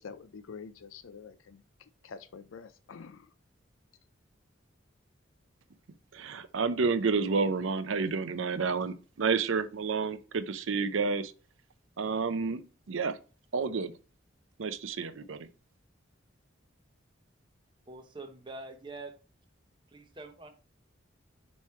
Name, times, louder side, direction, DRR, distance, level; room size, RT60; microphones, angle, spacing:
voice 1, 0.0-1.6 2.0-3.3, left 5 dB, 90° left, 0.5 m, -46 dB
voice 2, 6.1-11.3 12.0-12.6 12.9-13.2 13.5-13.9 14.6-15.5, right 4 dB, 80° right, 0.6 m, -30 dB
voice 3, 17.9-19.1 19.9-20.5, right 2 dB, 25° right, 0.8 m, -44 dB
7.1 x 3.2 x 4.3 m
head